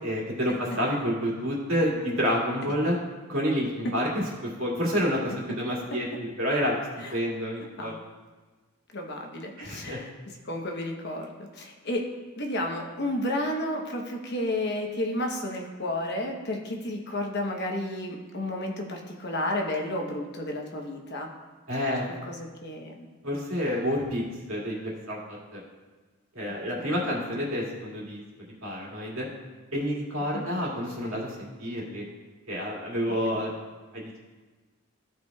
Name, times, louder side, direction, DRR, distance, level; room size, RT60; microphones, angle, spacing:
voice 1, 0.0-3.0 3.3-4.2 4.6-6.8 7.1-7.9 9.6-10.0 21.7-22.0 23.2-24.2 24.5-25.6 26.3-28.2 28.6-29.3 29.7-32.0 32.5-33.5 33.9-34.1, equal, 70° right, -5 dB, 2.2 m, -29 dB
voice 2, 8.9-10.1 10.4-12.1 12.4-21.3 22.1-23.1 26.5-27.1 30.3-30.5 33.3-33.4, left 1 dB, 50° left, 2 dB, 1.0 m, -32 dB
15.0 x 5.0 x 2.3 m, 1.3 s
head